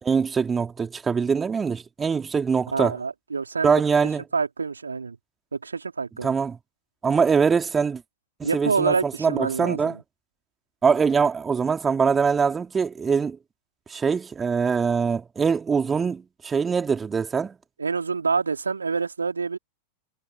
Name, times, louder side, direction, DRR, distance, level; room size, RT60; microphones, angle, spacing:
voice 1, 0.0-3.0 3.6-4.2 6.2-6.6 7.0-8.0 8.4-10.0 10.8-13.4 13.9-17.6, right 5 dB, 15° right, 3.2 m, -23 dB
voice 2, 2.7-3.8 4.3-5.2 5.5-6.3 8.4-10.0 17.8-19.6, right 5 dB, 75° right, 4.2 m, -27 dB
figure-of-eight pair, 90°, 0 cm